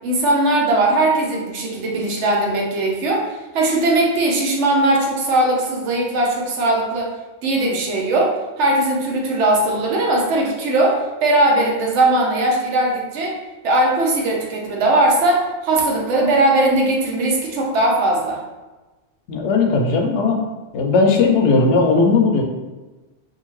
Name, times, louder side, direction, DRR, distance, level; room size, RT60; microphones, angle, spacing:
voice 1, 0.0-7.1 7.4-13.4 13.6-18.4, right 2 dB, 85° right, -1 dB, 1.0 m, -19 dB
voice 2, 19.3-20.4 20.7-22.4, left 3 dB, 85° left, 2 dB, 0.9 m, -16 dB
2.7 x 2.4 x 3.0 m, 1.2 s
omnidirectional pair, 1.2 m